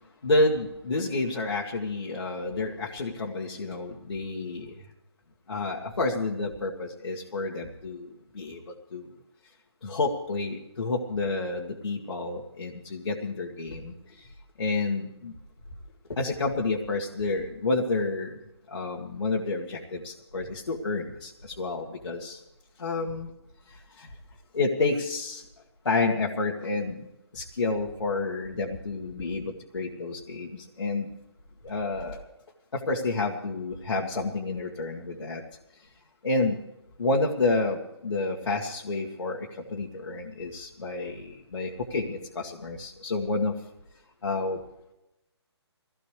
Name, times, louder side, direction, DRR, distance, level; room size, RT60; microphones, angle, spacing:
voice 1, 0.2-4.7 5.5-8.6 8.9-9.1 9.8-13.9 14.6-15.3 16.1-18.4 18.7-22.4 22.8-23.3 24.0-24.1 24.5-25.4 25.9-27.1 27.3-31.1 31.6-32.2 32.7-35.4 36.2-36.6 37.0-43.5 44.2-44.6, left 3 dB, 80° left, -1 dB, 1.9 m, -29 dB
23.0 x 16.5 x 3.4 m, 0.92 s
hypercardioid pair, 155°, 14 cm